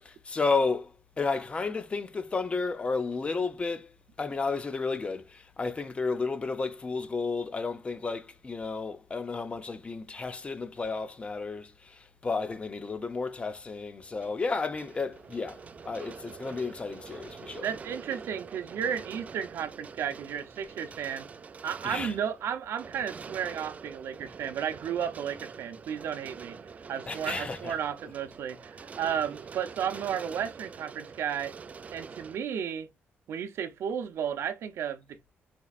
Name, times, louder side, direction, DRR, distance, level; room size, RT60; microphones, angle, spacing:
voice 1, 0.0-17.7 21.8-22.1 27.1-27.7, left 4 dB, 25° left, 0.6 m, -32 dB
sound 1, 14.0-32.4, right 5 dB, 35° right, 0.4 m, -45 dB
voice 2, 17.6-21.3 21.6-26.6 26.9-31.5 31.9-32.9 33.3-35.3, right 8 dB, 75° right, 0.6 m, -33 dB
4.4 x 4.0 x 2.4 m
cardioid pair, 135°, 4 cm